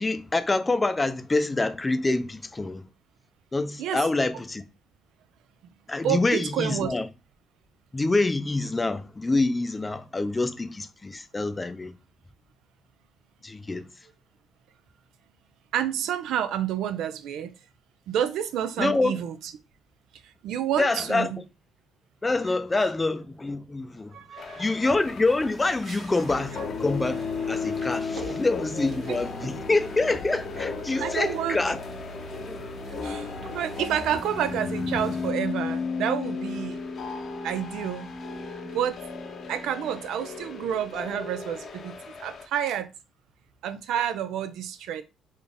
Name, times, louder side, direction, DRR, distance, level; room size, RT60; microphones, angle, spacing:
voice 1, 0.0-2.9 3.5-4.6 5.9-7.1 7.9-12.0 13.4-14.1 18.8-19.2 20.8-21.3 22.2-24.2 24.6-31.8 32.5-32.6, left 2 dB, 20° left, 0.5 m, -26 dB
voice 2, 6.0-6.9 15.7-17.5 18.1-19.3 20.4-21.4 24.1-24.6 28.2-28.4 29.1-29.2 31.0-31.6 33.0-36.8 37.4-38.1 38.7-39.0 39.5-41.9 42.2-42.9 43.6-45.0, right 10 dB, 75° right, 0.4 m, -29 dB
sound 1, 24.4-42.5, left 4 dB, 50° left, 0.7 m, -34 dB
sound 2, 24.8-35.3, right 2 dB, 50° right, 1.5 m, -48 dB
3.9 x 2.5 x 3.4 m
cardioid pair, 110°, 0 cm